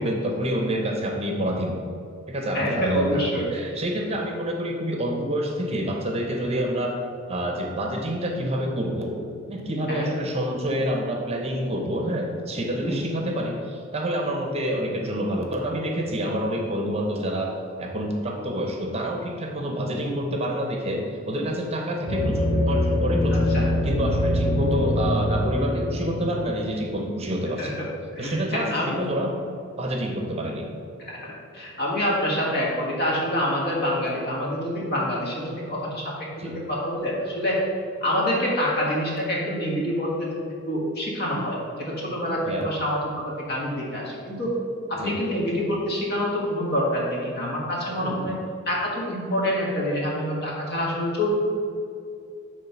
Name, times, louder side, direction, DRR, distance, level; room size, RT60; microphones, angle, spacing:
voice 1, 0.0-1.8 2.3-3.2 3.5-7.0 7.3-9.2 9.5-23.5 23.8-27.8 28.2-29.3 29.8-30.7 36.4-36.6 42.5-42.7 44.9-45.2 48.0-48.3, equal, 30° right, 1 dB, 0.7 m, -28 dB
voice 2, 2.5-3.5 9.9-10.1 12.8-13.0 23.3-23.7 27.6-27.7 28.1-29.0 31.0-37.6 38.0-40.3 40.7-44.5 44.9-48.3 48.7-51.3, equal, 50° left, -4 dB, 1.5 m, -26 dB
sound 1, 22.1-26.8, left 1 dB, 15° left, 1.6 m, -23 dB
7.3 x 3.2 x 5.7 m, 2.4 s
head